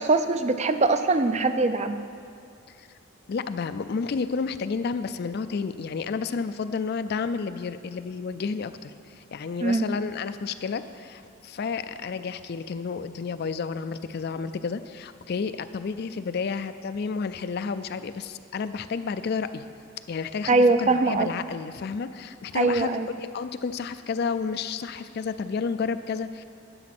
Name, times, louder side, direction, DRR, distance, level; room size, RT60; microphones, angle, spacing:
voice 1, 0.0-2.1 9.6-9.9 20.5-21.3 22.5-23.1, right 3 dB, 35° right, 10 dB, 0.4 m, -22 dB
voice 2, 3.3-19.7 20.1-26.4, left 5 dB, 50° left, 12 dB, 0.4 m, -31 dB
12.0 x 7.1 x 6.0 m, 2.4 s
head